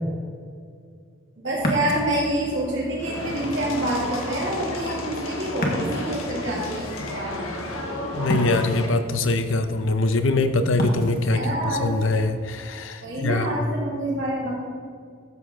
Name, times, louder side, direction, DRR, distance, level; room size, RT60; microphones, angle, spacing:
voice 1, 1.4-7.5 11.3-11.9 13.0-14.5, right 1 dB, 60° right, -6 dB, 2.5 m, -27 dB
Ocean, 1.5-12.7, equal, 45° left, 1.6 m, -33 dB
sound 1, 3.0-8.9, left 2 dB, 90° left, 1.3 m, -32 dB
voice 2, 8.1-13.5, left 2 dB, 70° left, 9 dB, 0.7 m, -23 dB
13.0 x 7.8 x 3.7 m, 2.1 s
head